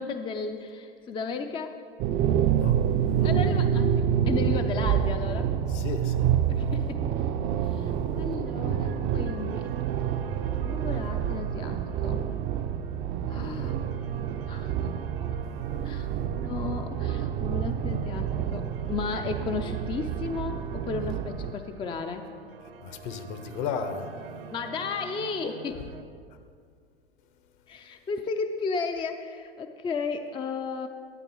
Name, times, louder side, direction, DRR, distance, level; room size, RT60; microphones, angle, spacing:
voice 1, 0.0-1.8 3.2-5.5 6.5-7.3 7.6-9.7 10.6-12.2 13.3-13.8 14.5-14.9 15.8-22.3 24.5-25.9 27.7-30.9, left 4 dB, 15° left, 0.5 m, -34 dB
sound 1, 2.0-21.5, right 9 dB, 35° right, 0.6 m, -28 dB
voice 2, 5.7-6.3 22.8-24.1, left 6 dB, 55° left, 1.3 m, -34 dB
sound 2, 8.0-26.0, right 6 dB, 70° right, 1.0 m, -46 dB
12.0 x 8.9 x 4.6 m
hypercardioid pair, 100°, 30 cm